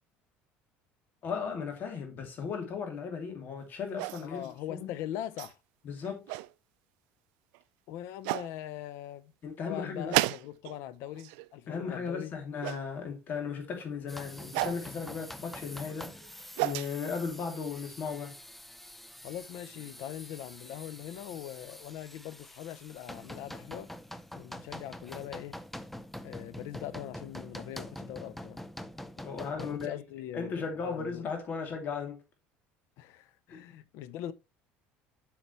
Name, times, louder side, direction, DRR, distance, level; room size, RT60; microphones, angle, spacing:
voice 1, 1.2-4.9 5.8-6.3 9.4-10.2 11.7-16.1 16.6-18.4 29.2-30.0 30.3-32.2 33.5-33.6, left 5 dB, 40° left, 2.8 m, -36 dB
sound 1, 4.0-4.5 5.4-5.5 6.0-6.5 7.5-7.6 8.2-8.5 10.1-10.8 11.1-11.5 12.6-12.8 14.5-14.8 16.2-16.9, right 20 dB, 80° right, 0.4 m, -32 dB
voice 2, 4.2-5.5 7.9-9.3 9.6-12.3 19.2-23.9 24.3-25.6 26.2-28.6 29.6-31.3 33.0-34.3, left 12 dB, 65° left, 0.7 m, -41 dB
sound 2, 14.1-29.9, left 1 dB, 5° left, 0.5 m, -45 dB
8.4 x 5.9 x 3.2 m
cardioid pair, 135°, 5 cm